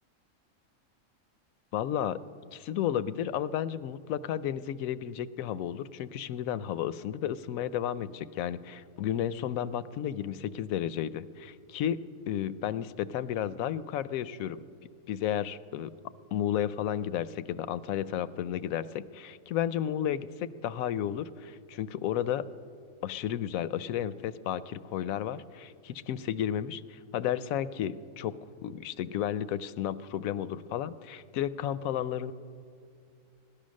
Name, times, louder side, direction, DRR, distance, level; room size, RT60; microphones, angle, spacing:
voice 1, 1.7-2.2 2.5-14.6 15.1-15.9 16.3-22.5 23.0-32.3, left 10 dB, 85° left, 16 dB, 1.0 m, -32 dB
18.0 x 12.0 x 6.4 m, 2.3 s
omnidirectional pair, 1.4 m